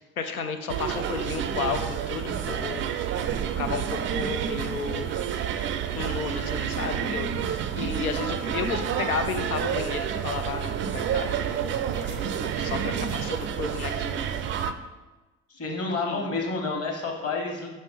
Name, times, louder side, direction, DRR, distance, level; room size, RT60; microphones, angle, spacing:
voice 1, 0.2-2.8 3.6-5.2 5.9-11.3 11.9-14.2 16.1-16.4, left 5 dB, 85° left, 6 dB, 0.6 m, -33 dB
sound 1, 0.7-14.7, right 8 dB, 30° right, 0.4 m, -29 dB
voice 2, 12.6-13.0 15.5-17.7, left 3 dB, 35° left, 1 dB, 1.4 m, -30 dB
5.2 x 4.1 x 4.8 m, 1.1 s
figure-of-eight pair, 55°, 42 cm